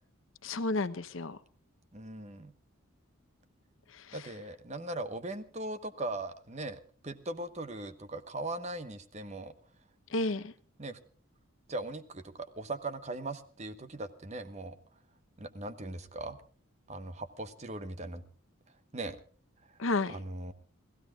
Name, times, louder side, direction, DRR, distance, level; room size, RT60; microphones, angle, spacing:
voice 1, 0.4-1.4 3.9-4.3 10.1-10.5 19.8-20.2, left 2 dB, 65° left, 13 dB, 0.9 m, -32 dB
voice 2, 1.9-2.5 4.1-9.5 10.8-11.0 11.7-14.8 15.4-16.4 16.9-18.2 18.9-19.2 20.1-20.5, right 2 dB, 30° right, 11 dB, 1.1 m, -39 dB
29.0 x 16.0 x 2.4 m, 0.40 s
head